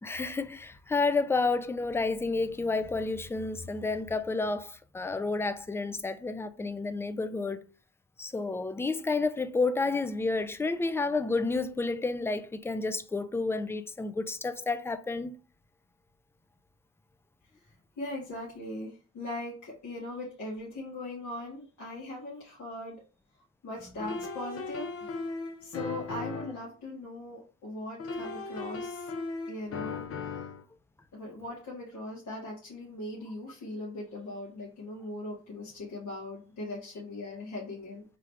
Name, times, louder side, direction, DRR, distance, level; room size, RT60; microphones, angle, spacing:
voice 1, 0.0-7.6 8.2-15.3, left 3 dB, 10° left, 0.4 m, -30 dB
voice 2, 18.0-23.0 23.6-25.3 25.6-29.1 29.5-30.0 31.1-38.0, left 1 dB, 70° left, 1.9 m, -40 dB
sound 1, 24.0-26.7 28.0-30.6, left 4 dB, 50° left, 0.7 m, -37 dB
3.7 x 3.2 x 3.5 m
cardioid pair, 90°, 30 cm